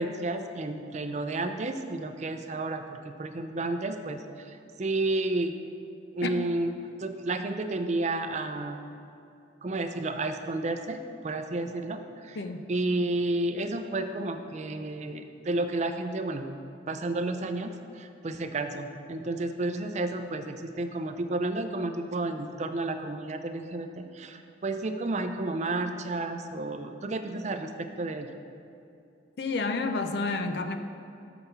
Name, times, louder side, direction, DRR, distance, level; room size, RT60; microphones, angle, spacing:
voice 1, 0.0-5.5 6.1-8.8 9.6-11.0 11.2-12.4 12.7-16.5 16.9-17.7 17.9-28.3, right 2 dB, 40° right, 7 dB, 0.5 m, -31 dB
voice 2, 12.4-12.7 29.4-30.8, left 3 dB, 65° left, 8 dB, 0.5 m, -30 dB
5.9 x 5.5 x 6.8 m, 2.7 s
head